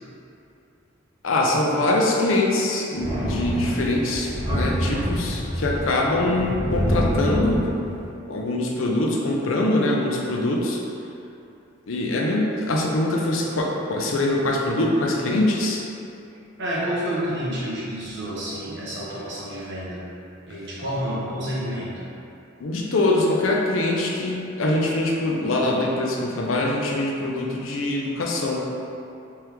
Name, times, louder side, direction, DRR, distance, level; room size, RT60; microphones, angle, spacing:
voice 1, 1.2-7.7 8.3-10.8 11.9-15.8 22.6-28.7, left 2 dB, 85° left, -1 dB, 0.5 m, -23 dB
Thunder, 3.0-8.1, equal, 25° right, 1.1 m, -26 dB
voice 2, 16.6-20.1 20.5-22.0, equal, 60° right, -8 dB, 1.0 m, -29 dB
3.5 x 3.0 x 3.4 m, 2.7 s
head